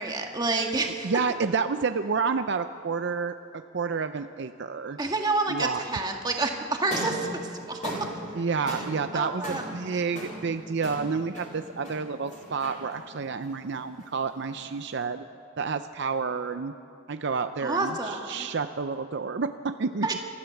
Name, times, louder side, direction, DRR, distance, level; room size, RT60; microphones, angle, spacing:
voice 1, 0.0-1.1 5.0-7.3 7.7-7.9 9.1-9.6 17.6-18.5 20.0-20.1, right 3 dB, 20° right, 2 dB, 1.7 m, -28 dB
voice 2, 1.0-5.0 5.5-6.0 8.3-15.3 15.6-16.7 17.1-20.2, right 5 dB, 60° right, 9 dB, 0.5 m, -30 dB
sound 1, 6.8-15.1, equal, 40° left, 4.6 m, -39 dB
27.5 x 14.0 x 7.1 m, 2.5 s
head